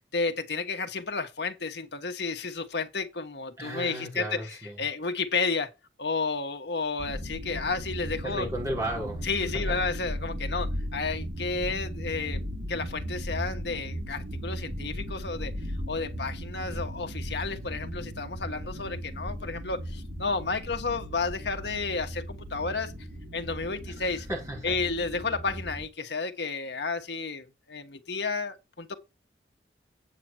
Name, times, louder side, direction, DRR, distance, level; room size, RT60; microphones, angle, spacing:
voice 1, 0.0-5.7 6.0-8.5 9.2-15.5 15.9-22.9 23.3-24.3 24.6-29.0, left 4 dB, 65° left, 1.3 m, -32 dB
voice 2, 3.6-4.8 8.2-9.3 9.5-9.8 23.9-24.7, right 1 dB, 15° right, 4.8 m, -35 dB
sound 1, 7.0-25.9, equal, 55° right, 3.4 m, -36 dB
8.7 x 7.5 x 4.4 m
head